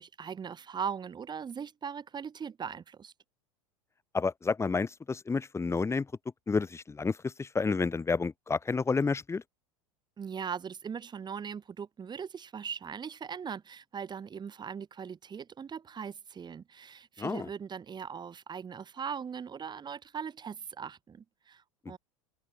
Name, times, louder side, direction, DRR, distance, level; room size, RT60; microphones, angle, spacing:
voice 1, 0.0-3.1 10.2-22.0, right 7 dB, 25° right, 5.1 m, -40 dB
voice 2, 4.1-6.1 6.5-9.4 17.2-17.5, left 4 dB, 15° left, 2.4 m, -30 dB
open air
hypercardioid pair, 95°, 18 cm